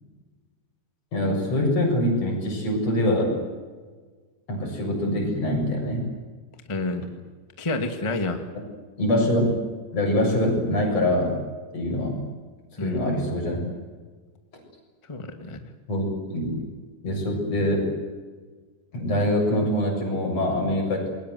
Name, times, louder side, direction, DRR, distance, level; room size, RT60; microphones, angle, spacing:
voice 1, 1.1-3.4 4.5-6.0 9.0-9.6 9.9-11.4 11.7-12.2 12.8-13.6 15.9-16.0 16.3-16.6 17.0-17.9 18.9-21.1, left 1 dB, 35° left, 1 dB, 8.3 m, -24 dB
voice 2, 6.7-7.0 7.6-8.4 12.8-13.0 15.1-15.7, left 2 dB, 20° left, 6 dB, 0.8 m, -29 dB
28.5 x 22.5 x 8.0 m, 1.4 s
omnidirectional pair, 5.1 m